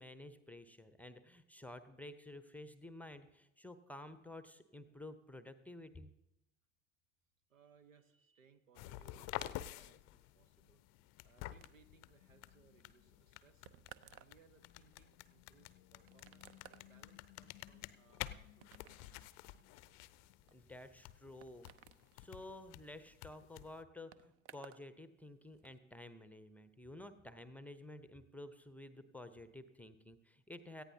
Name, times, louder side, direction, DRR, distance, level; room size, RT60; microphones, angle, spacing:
voice 1, 0.0-6.1 20.5-21.7 22.1-30.8, left 1 dB, 5° left, 11 dB, 0.7 m, -52 dB
voice 2, 7.5-10.8 11.2-13.7 14.2-19.3, right 5 dB, 80° right, 12 dB, 1.0 m, -68 dB
sound 1, 8.7-23.8, left 15 dB, 40° left, 0.5 m, -51 dB
sound 2, 11.6-24.9 25.2-25.8, right 10 dB, 35° right, 0.6 m, -62 dB
18.0 x 14.5 x 2.8 m, 0.88 s
figure-of-eight pair, 70°, 39 cm